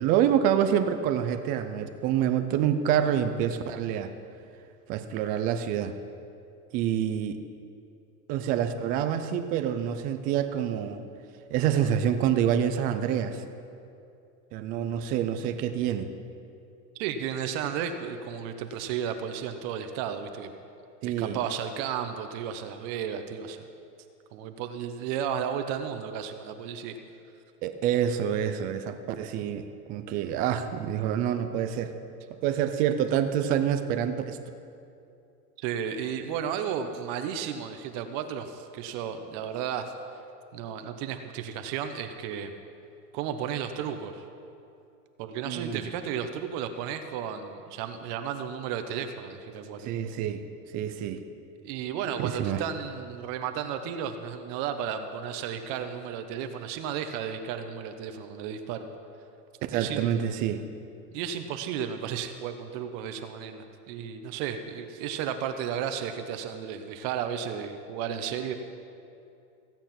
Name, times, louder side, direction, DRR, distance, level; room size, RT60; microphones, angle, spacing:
voice 1, 0.0-4.1 4.9-5.9 6.7-7.4 8.3-11.0 11.5-13.4 14.5-16.1 21.0-21.4 27.6-31.9 32.4-34.4 45.4-45.9 49.8-50.4 50.7-51.2 52.2-52.6 59.7-60.6, right 9 dB, 20° right, 9 dB, 0.3 m, -27 dB
voice 2, 17.0-20.5 21.0-23.6 24.3-27.0 35.6-39.9 40.5-42.5 43.1-44.2 45.2-49.8 51.6-58.9 59.7-60.1 61.1-68.5, right 8 dB, 45° right, 7 dB, 1.0 m, -33 dB
16.0 x 8.9 x 5.8 m, 2.6 s
hypercardioid pair, 125°, 47 cm